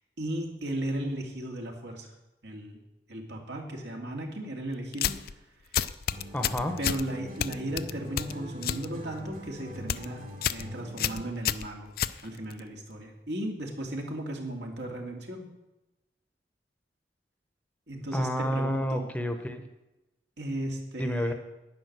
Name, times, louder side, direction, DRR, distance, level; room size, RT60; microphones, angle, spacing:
voice 1, 0.2-2.1 2.4-2.8 3.1-5.2 6.8-11.9 12.2-15.5 17.9-19.1 20.4-21.3, right 1 dB, 80° right, 1 dB, 2.4 m, -35 dB
sound 1, 4.9-5.3 5.7-7.0 7.4-8.9 9.2-9.5 9.8-10.1 10.4-10.7 11.0-12.6, left 9 dB, 55° left, 0.4 m, -30 dB
sound 2, 6.1-11.4, equal, 50° right, 2.8 m, -43 dB
voice 2, 6.3-6.7 18.1-19.7 21.0-21.3, equal, 10° left, 6 dB, 0.8 m, -29 dB
10.5 x 9.5 x 6.7 m, 0.99 s
head